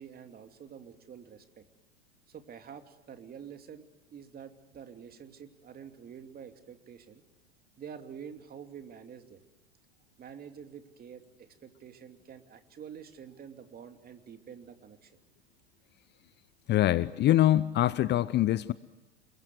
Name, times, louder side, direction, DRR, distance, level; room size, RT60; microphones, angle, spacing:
voice 1, 0.0-1.6 2.3-7.2 7.8-9.4 10.2-15.1, right 7 dB, 30° right, 6 dB, 2.9 m, -47 dB
voice 2, 16.7-18.7, left 13 dB, 35° left, 18 dB, 0.8 m, -24 dB
28.0 x 23.0 x 7.9 m, 1.0 s
hypercardioid pair, 85°, 31 cm